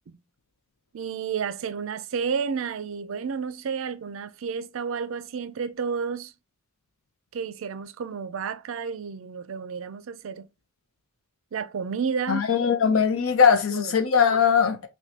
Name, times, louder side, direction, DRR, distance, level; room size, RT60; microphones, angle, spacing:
voice 1, 0.9-6.3 7.3-10.5 11.5-12.5 13.7-13.9, right 6 dB, 70° right, 0.4 m, -31 dB
voice 2, 12.3-14.9, left 6 dB, 75° left, 0.6 m, -20 dB
5.8 x 2.2 x 2.7 m
head